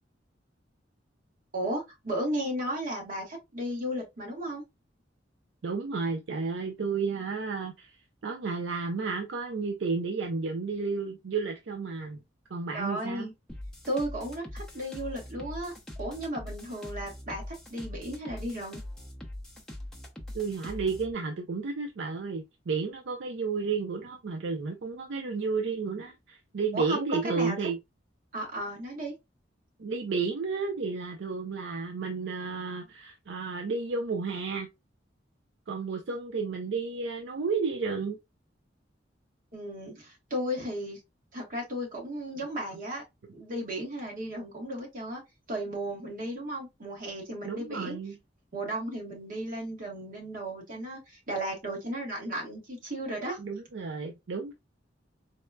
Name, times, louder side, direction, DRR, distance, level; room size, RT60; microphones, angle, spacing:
voice 1, 1.5-4.6 12.7-13.3 13.9-18.8 26.7-27.6 28.3-29.1 39.5-41.0 41.3-43.0 43.3-45.2 45.5-48.0 48.5-53.4, right 1 dB, 50° right, 1.4 m, -35 dB
voice 2, 5.6-7.9 8.2-12.2 12.5-13.3 20.3-27.8 29.8-34.7 35.7-38.2 47.4-48.2 53.4-54.5, right 4 dB, 75° right, 0.5 m, -32 dB
sound 1, 13.5-21.1, left 1 dB, 5° left, 0.6 m, -42 dB
4.1 x 2.2 x 2.3 m
head